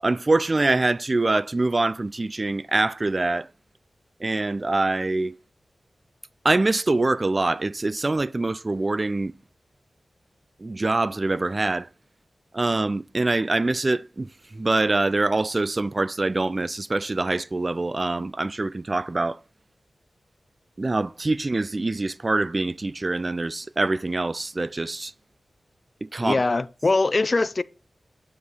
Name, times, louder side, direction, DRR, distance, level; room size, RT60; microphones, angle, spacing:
voice 1, 0.0-3.5 4.2-5.3 6.4-9.3 10.6-11.9 12.5-19.4 20.8-25.1 26.0-26.4, right 2 dB, 35° right, 0.4 m, -24 dB
voice 2, 26.2-27.6, left 3 dB, 45° left, 0.6 m, -22 dB
9.5 x 7.6 x 4.0 m
wide cardioid pair, 70°, 0 cm